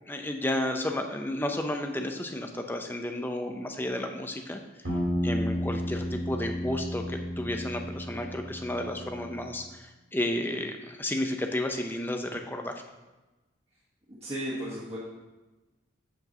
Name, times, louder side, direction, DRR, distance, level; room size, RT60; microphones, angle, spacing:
voice 1, 0.1-4.6 5.2-12.8, left 1 dB, 10° left, 4 dB, 0.6 m, -32 dB
sound 1, 4.8-9.5, equal, 65° right, 3.2 m, -33 dB
voice 2, 14.2-15.0, right 1 dB, 30° right, -9 dB, 1.6 m, -34 dB
8.1 x 4.6 x 6.7 m, 1.1 s
head